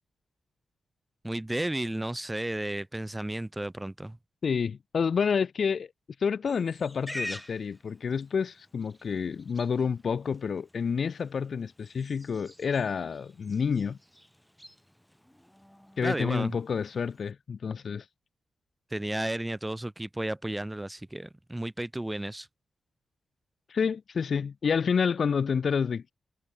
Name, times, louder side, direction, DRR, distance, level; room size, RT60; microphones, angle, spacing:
voice 1, 1.2-4.2 16.0-16.6 18.9-22.5, right 1 dB, 10° right, 0.9 m, -33 dB
voice 2, 4.4-5.9 6.2-14.0 16.0-18.0 23.7-26.1, left 6 dB, 60° left, 0.7 m, -29 dB
Livestock farm animals working animals, 6.5-17.3, equal, 5° left, 4.9 m, -47 dB
cardioid pair, 70°, 0 cm